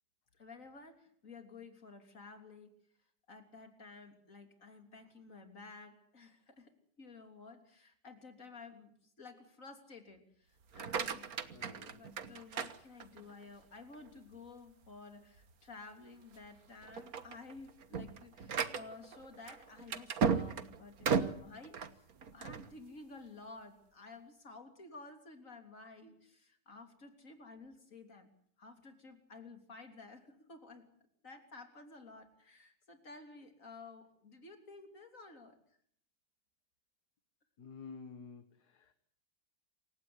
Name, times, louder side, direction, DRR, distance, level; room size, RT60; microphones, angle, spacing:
voice 1, 0.3-2.7 3.3-6.7 7.0-11.3 11.9-22.1 22.3-30.9 31.2-35.6, left 3 dB, 45° left, 6 dB, 3.7 m, -53 dB
sound 1, 10.6-13.4 13.9-14.4 14.8-14.9 15.4-15.5 16.2-16.5 16.8-22.7, right 6 dB, 55° right, 1.7 m, -36 dB
voice 2, 11.5-12.0 37.6-38.9, left 5 dB, 65° left, 10 dB, 2.0 m, -51 dB
27.5 x 16.5 x 9.7 m, 0.66 s
omnidirectional pair, 1.9 m